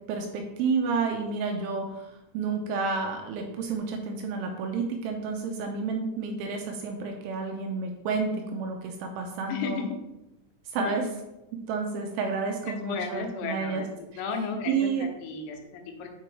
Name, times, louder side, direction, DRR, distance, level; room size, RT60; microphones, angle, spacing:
voice 1, 0.0-9.8 10.7-11.1 11.5-13.8 14.7-15.1, right 4 dB, 80° right, 3 dB, 2.9 m, -30 dB
voice 2, 9.5-10.0 10.8-11.1 12.6-16.1, left 4 dB, 80° left, 4 dB, 3.6 m, -34 dB
9.9 x 4.9 x 3.5 m, 0.94 s
omnidirectional pair, 5.9 m